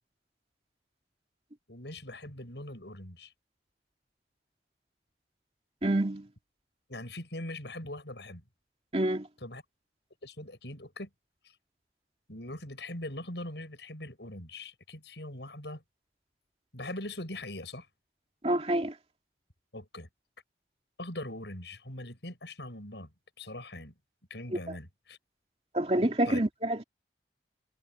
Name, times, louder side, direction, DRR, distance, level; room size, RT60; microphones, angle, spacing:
voice 1, 1.7-3.3 6.9-8.4 9.4-9.6 10.2-11.1 12.3-15.8 16.7-17.9 19.7-20.1 21.0-23.1 23.4-23.9 24.3-25.2 26.3-26.4, left 1 dB, 70° left, 7.6 m, -41 dB
voice 2, 5.8-6.3 8.9-9.3 18.4-18.9 25.7-26.8, right 1 dB, 35° right, 2.6 m, -27 dB
head